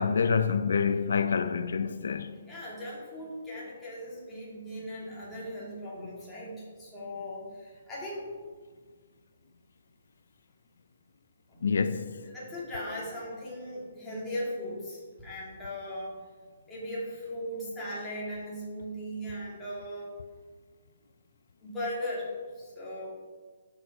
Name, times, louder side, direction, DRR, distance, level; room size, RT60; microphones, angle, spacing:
voice 1, 0.0-2.4 11.6-12.1, left 5 dB, 70° left, 0.5 m, -27 dB
voice 2, 2.5-8.3 11.5-11.6 12.2-16.2 16.7-20.1 21.6-22.3 22.6-23.1, equal, 5° left, 2.5 m, -38 dB
11.5 x 6.4 x 4.8 m
hypercardioid pair, 175°, 0 cm